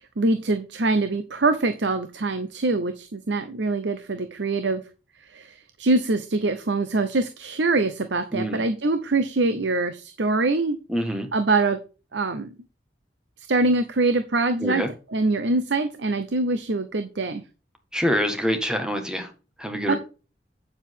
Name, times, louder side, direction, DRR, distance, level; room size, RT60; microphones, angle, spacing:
voice 1, 0.0-4.8 5.3-10.8 11.3-11.8 12.1-12.5 13.5-14.8 15.1-17.4 19.9-20.0, right 3 dB, 75° right, 0.8 m, -24 dB
voice 2, 8.3-8.6 10.9-11.3 14.6-14.9 17.9-19.3 19.6-20.0, equal, 5° right, 1.6 m, -25 dB
9.0 x 7.4 x 3.7 m
head